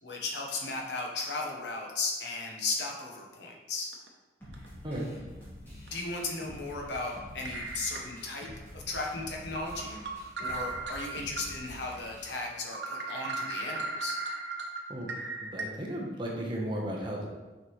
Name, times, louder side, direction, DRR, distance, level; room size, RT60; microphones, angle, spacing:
voice 1, 0.0-3.9 5.6-10.0 10.4-14.2, left 3 dB, 75° left, 0 dB, 1.1 m, -36 dB
sound 1, 3.9-4.1 4.5-4.7 5.9-6.0 7.4-8.5 8.9-9.0 9.5-11.4 11.9-12.0 12.4-12.5 12.7-15.6, right 3 dB, 75° right, 0.8 m, -37 dB
sound 2, 4.4-12.4, left 1 dB, 10° left, 1.8 m, -48 dB
voice 2, 15.4-17.3, right 1 dB, 25° right, -2 dB, 1.0 m, -35 dB
6.5 x 5.0 x 3.2 m, 1.2 s
head